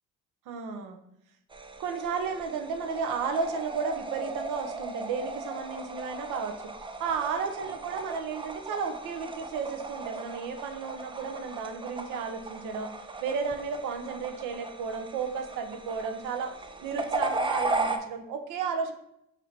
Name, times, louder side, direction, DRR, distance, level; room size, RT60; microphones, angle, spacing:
voice 1, 0.5-1.0 1.8-6.6 7.0-12.9 13.2-16.5 16.8-18.9, right 5 dB, 90° right, 6 dB, 0.6 m, -33 dB
sound 1, 1.5-18.0, right 3 dB, 15° right, 0.4 m, -37 dB
4.2 x 2.6 x 4.4 m, 0.77 s
cardioid pair, 90°, 30 cm